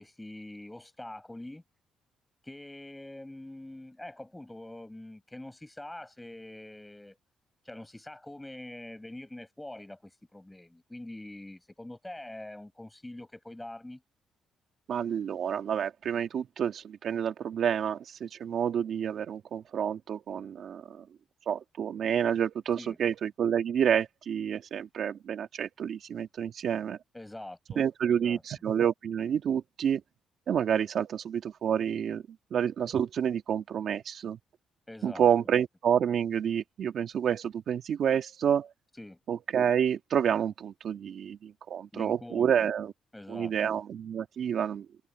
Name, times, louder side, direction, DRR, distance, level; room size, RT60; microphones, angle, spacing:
voice 1, 0.0-1.6 2.4-7.2 7.6-14.0 22.8-23.0 27.1-28.4 34.9-35.3 38.9-39.2 41.9-42.7 43.1-43.7, left 1 dB, 10° left, 7.2 m, -44 dB
voice 2, 14.9-21.0 21.5-27.0 27.8-30.0 30.5-32.2 32.5-34.4 35.0-38.7 39.3-42.9 43.3-44.8, right 8 dB, 65° right, 1.6 m, -29 dB
cardioid pair, 90°, 0 cm